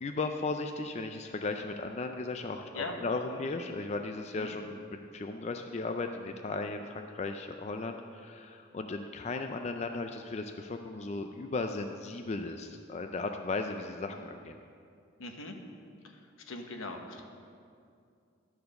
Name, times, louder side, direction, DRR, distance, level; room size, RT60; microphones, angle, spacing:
voice 1, 0.0-14.6, left 3 dB, 35° left, 5 dB, 0.3 m, -36 dB
voice 2, 15.2-15.5 16.0-16.1 16.5-17.2, left 2 dB, 85° left, 4 dB, 1.0 m, -40 dB
12.0 x 4.6 x 6.5 m, 2.4 s
head